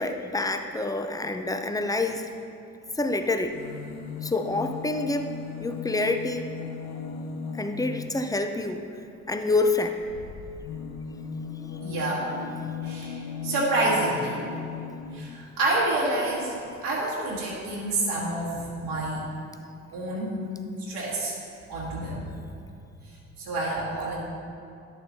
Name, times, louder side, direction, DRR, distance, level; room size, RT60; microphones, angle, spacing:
voice 1, 0.0-2.3 3.0-3.6 4.2-5.3 5.6-6.5 7.5-8.8 9.3-10.0, left 2 dB, 10° left, 7 dB, 0.6 m, -27 dB
sound 1, 3.4-8.3 10.0-15.4 16.4-16.5 16.7-16.8, left 5 dB, 70° left, 0.7 m, -37 dB
voice 2, 11.8-12.3 12.8-14.4 15.1-19.2 19.9-20.5 20.8-21.3 21.7-22.3 23.0-23.1 23.4-24.2, right 2 dB, 75° right, -6 dB, 1.5 m, -28 dB
11.0 x 6.7 x 2.8 m, 2.5 s
hypercardioid pair, 40°, 39 cm